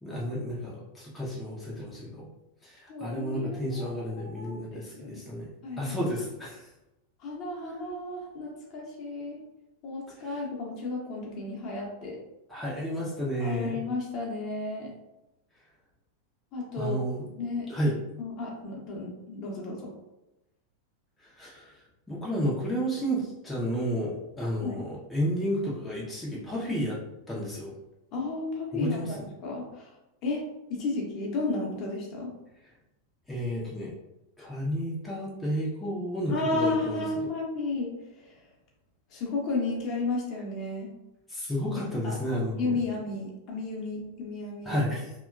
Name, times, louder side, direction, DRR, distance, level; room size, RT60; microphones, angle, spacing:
voice 1, 0.0-2.3 2.6-5.5 5.8-6.7 10.2-10.4 12.5-13.8 16.8-17.3 17.7-18.0 21.2-21.8 22.1-27.0 27.3-27.7 28.7-29.2 33.3-33.9 34.4-37.0 41.3-42.8 44.6-45.1, equal, 5° left, -7 dB, 0.6 m, -31 dB
voice 2, 2.9-5.2 5.6-6.0 7.2-9.4 9.8-12.2 13.4-14.9 16.5-17.0 17.4-17.7 18.2-19.9 24.6-24.8 28.1-29.0 29.4-29.9 30.2-30.4 30.7-32.3 36.3-38.4 39.1-40.9 42.0-42.1 42.6-44.8, left 3 dB, 40° left, -2 dB, 0.8 m, -33 dB
2.8 x 2.2 x 2.3 m, 0.94 s
figure-of-eight pair, 90°, 0 cm